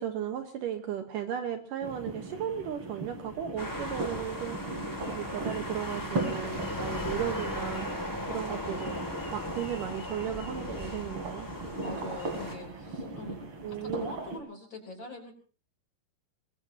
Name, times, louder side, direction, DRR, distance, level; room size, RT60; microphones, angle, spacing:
voice 1, 0.0-4.6 5.0-8.0 8.3-9.0 9.3-11.5 13.6-14.1, right 9 dB, 70° right, 6 dB, 2.4 m, -35 dB
sound 1, 1.8-14.4, right 2 dB, 35° right, 3.6 m, -38 dB
sound 2, 3.6-12.6, left 1 dB, 10° left, 1.2 m, -37 dB
voice 2, 11.8-13.4 13.7-15.3, left 2 dB, 30° left, 3 dB, 4.0 m, -43 dB
23.0 x 21.5 x 2.8 m, 0.37 s
omnidirectional pair, 4.5 m